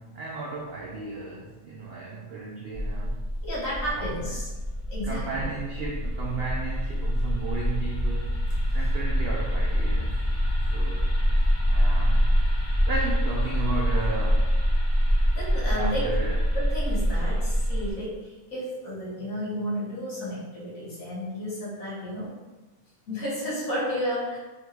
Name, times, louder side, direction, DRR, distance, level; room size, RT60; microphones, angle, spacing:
voice 1, 0.0-3.3 3.8-4.4 5.0-8.4 8.7-10.2 10.7-11.2 11.7-14.6 15.7-16.4, right 3 dB, 70° right, -2 dB, 0.5 m, -34 dB
sound 1, 2.7-17.9, equal, 15° left, 1.3 m, -25 dB
voice 2, 3.4-4.5 4.9-5.5 10.5-10.6 15.3-16.1 16.5-22.3 23.1-24.4, equal, 60° left, -7 dB, 1.9 m, -32 dB
3.7 x 3.4 x 3.2 m, 1.1 s
omnidirectional pair, 1.6 m